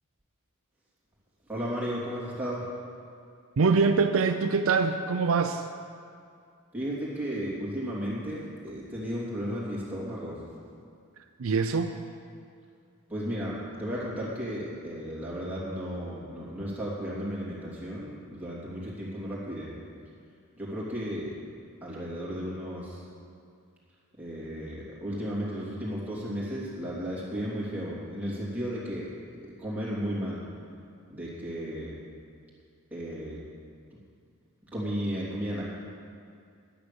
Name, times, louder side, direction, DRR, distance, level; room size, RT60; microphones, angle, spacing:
voice 1, 1.5-2.6 6.7-10.4 13.1-19.7 20.6-21.3 21.8-23.0 24.2-29.1 29.6-30.4 31.1-32.0 32.9-33.4 33.9-34.0 34.7-35.6, equal, 5° right, -7 dB, 3.1 m, -34 dB
voice 2, 3.6-5.7 11.4-12.0, right 4 dB, 65° right, 7 dB, 0.5 m, -24 dB
10.5 x 9.9 x 7.0 m, 2.3 s
head